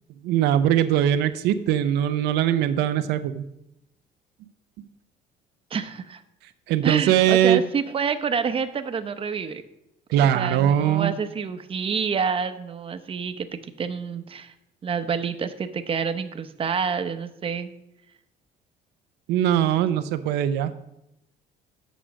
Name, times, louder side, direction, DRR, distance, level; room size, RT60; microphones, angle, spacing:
voice 1, 0.2-3.4 6.7-7.6 10.1-11.1 19.3-20.7, right 11 dB, 85° right, 10 dB, 0.6 m, -21 dB
voice 2, 5.7-6.2 6.8-9.6 10.2-14.5 14.8-17.7, right 6 dB, 35° right, 9 dB, 0.8 m, -28 dB
8.2 x 6.1 x 6.3 m, 0.85 s
cardioid pair, 110°, 17 cm